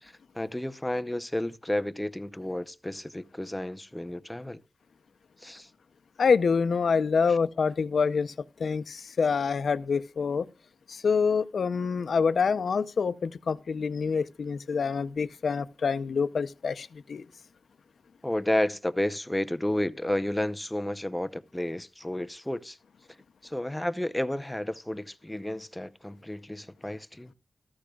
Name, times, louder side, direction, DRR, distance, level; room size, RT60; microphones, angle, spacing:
voice 1, 0.0-4.6 5.4-5.7 7.2-7.4 18.2-22.8 23.4-27.3, left 1 dB, 10° left, 0.7 m, -31 dB
voice 2, 6.2-8.3 8.6-10.5 10.9-17.3, left 5 dB, 80° left, 0.6 m, -26 dB
13.5 x 13.5 x 2.3 m
cardioid pair, 65°, 0 cm